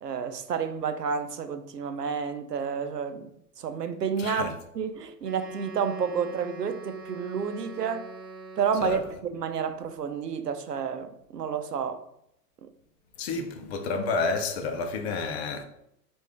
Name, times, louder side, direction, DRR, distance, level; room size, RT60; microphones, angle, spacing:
voice 1, 0.0-8.1 8.6-12.0 12.6-12.7, right 6 dB, 80° right, 0.6 m, -30 dB
voice 2, 4.2-4.5 8.8-9.0 13.2-15.6, left 4 dB, 40° left, 0.7 m, -30 dB
Wind instrument woodwind instrument, 5.2-9.3, right 2 dB, 10° right, 0.8 m, -43 dB
4.7 x 2.6 x 3.5 m
figure-of-eight pair, 105°, 47 cm